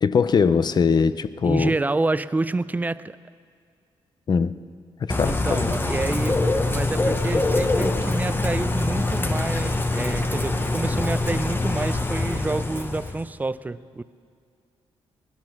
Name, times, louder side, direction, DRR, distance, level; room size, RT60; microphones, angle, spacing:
voice 1, 0.0-1.7 4.3-4.5 5.0-5.7, left 5 dB, 40° left, 15 dB, 0.5 m, -21 dB
voice 2, 1.4-3.2 5.2-6.4 6.7-14.0, right 2 dB, 15° right, 15 dB, 0.4 m, -28 dB
Bird / Rain, 5.1-13.2, left 2 dB, 20° left, 0.9 m, -24 dB
20.0 x 12.0 x 5.9 m, 2.2 s
cardioid pair, 100°, 11 cm